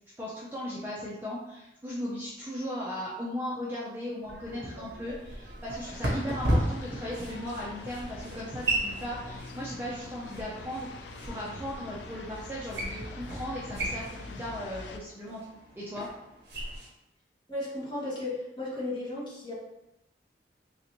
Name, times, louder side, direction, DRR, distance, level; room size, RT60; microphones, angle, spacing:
voice 1, 0.2-15.5 15.7-16.1, equal, 10° right, -6 dB, 0.5 m, -37 dB
sound 1, 4.2-16.9, right 1 dB, 65° right, 0.9 m, -36 dB
Laughter, 4.3-9.4, equal, 85° right, 0.6 m, -48 dB
sound 2, 5.8-15.0, left 3 dB, 75° left, 0.3 m, -45 dB
voice 2, 17.5-19.5, left 2 dB, 25° left, -8 dB, 1.4 m, -35 dB
3.2 x 2.7 x 2.9 m, 0.87 s
head